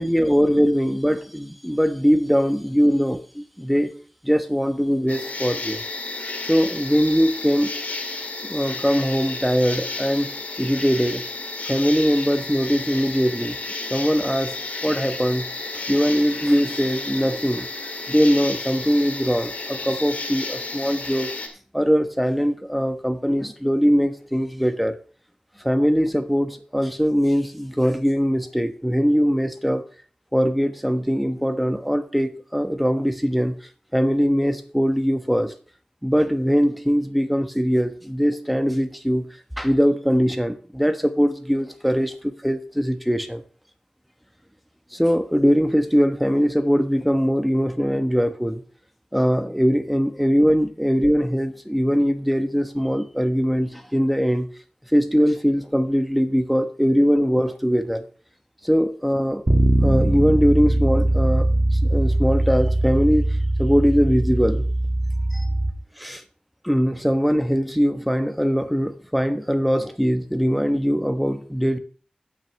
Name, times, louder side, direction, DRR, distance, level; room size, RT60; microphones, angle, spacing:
voice 1, 0.0-4.0 4.2-5.8 6.5-7.8 8.4-10.3 10.6-11.2 11.7-13.6 13.9-14.5 14.8-15.5 15.7-17.7 18.1-21.3 21.7-24.9 25.6-29.8 30.3-33.6 33.9-35.5 36.0-39.2 39.6-43.4 44.9-48.6 49.1-54.5 54.9-58.0 58.6-59.4 59.8-61.5 61.7-64.6 65.3-65.4 66.0-66.2 66.6-71.8, equal, ahead, 1.1 m, -21 dB
sound 1, 5.1-21.5, left 3 dB, 90° left, 2.0 m, -32 dB
Bass guitar, 59.5-65.7, right 1 dB, 40° right, 1.8 m, -21 dB
16.5 x 6.2 x 3.4 m
wide cardioid pair, 60°, 3 cm